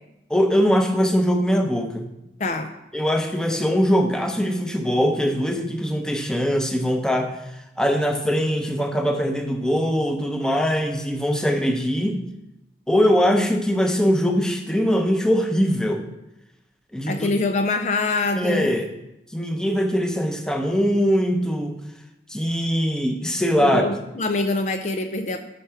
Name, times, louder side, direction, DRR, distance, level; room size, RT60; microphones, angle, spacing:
voice 1, 0.3-2.1 2.9-7.4 7.8-12.2 12.9-16.0 16.9-17.3 18.4-18.9 19.3-21.8 22.3-23.8, equal, 5° left, 4 dB, 0.8 m, -21 dB
voice 2, 2.4-2.7 17.1-18.7 23.6-25.4, left 3 dB, 40° left, 6 dB, 0.5 m, -24 dB
8.3 x 5.8 x 5.7 m, 0.92 s
head